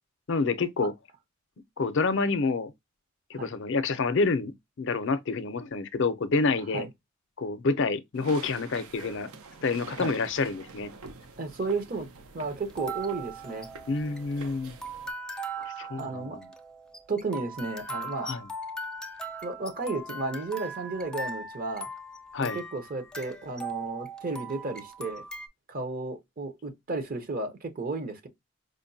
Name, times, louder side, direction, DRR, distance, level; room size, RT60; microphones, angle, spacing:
voice 1, 0.3-0.9 1.8-2.7 3.3-6.9 7.4-9.3 9.6-10.9 13.9-14.8 15.6-16.5 18.2-18.5 22.3-22.6, left 4 dB, 55° left, 0.5 m, -28 dB
sound 1, 8.1-15.1, right 4 dB, 80° right, 0.7 m, -47 dB
sound 2, 9.7-10.2 11.1-11.2 12.7-25.5, right 2 dB, 5° left, 0.4 m, -39 dB
voice 2, 11.4-12.1 12.3-13.7 16.0-16.4 17.1-18.3 19.4-21.9 22.4-25.2 25.7-28.3, right 3 dB, 40° right, 0.7 m, -33 dB
5.0 x 2.2 x 2.6 m
head